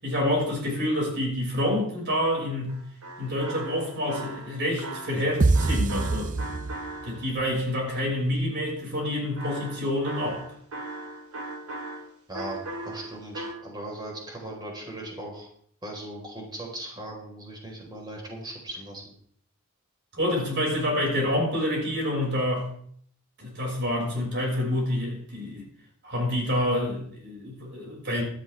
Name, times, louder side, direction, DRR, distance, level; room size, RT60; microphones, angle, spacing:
voice 1, 0.0-2.8 3.2-6.3 7.0-10.4 20.1-22.7 23.4-25.6 26.0-28.2, left 1 dB, 55° right, 6.3 m, -27 dB
sound 1, 2.7-7.5 9.4-12.1 12.3-13.5, right 2 dB, 85° right, 2.8 m, -38 dB
sound 2, 5.4-7.2, right 3 dB, 35° right, 0.5 m, -24 dB
voice 2, 12.8-15.5 15.8-19.1, right 1 dB, 20° right, 4.8 m, -38 dB
17.0 x 13.0 x 3.6 m
head